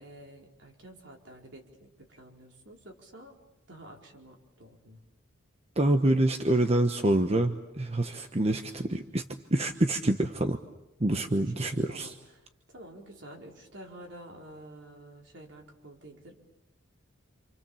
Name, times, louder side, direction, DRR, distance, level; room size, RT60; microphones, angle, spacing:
voice 1, 0.0-3.3 3.7-5.1 11.3-16.4, right 1 dB, 65° right, 1 dB, 4.7 m, -50 dB
voice 2, 5.8-9.2 9.5-10.6 11.0-12.1, right 1 dB, 35° right, 6 dB, 1.1 m, -26 dB
28.5 x 27.5 x 7.2 m, 0.94 s
head